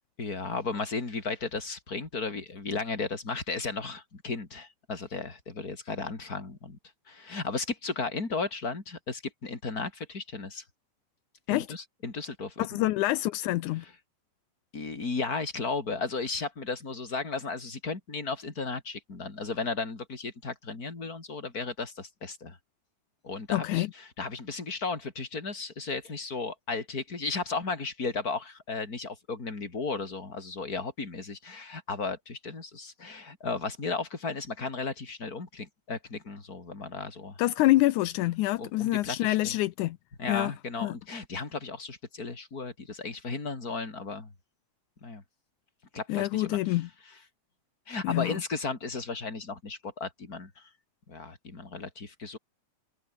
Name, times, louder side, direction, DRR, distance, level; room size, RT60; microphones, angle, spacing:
voice 1, 0.2-6.8 7.1-10.6 11.5-12.9 14.7-22.6 23.2-37.4 38.6-39.6 40.2-44.3 45.0-45.2 45.9-46.8 47.9-50.7 51.1-52.4, left 4 dB, 30° left, 4.1 m, -35 dB
voice 2, 12.6-13.9 23.5-23.9 37.4-40.0 40.3-40.5 40.8-41.0 46.1-46.9 48.0-48.4, left 17 dB, 80° left, 2.2 m, -26 dB
omnidirectional pair, 3.5 m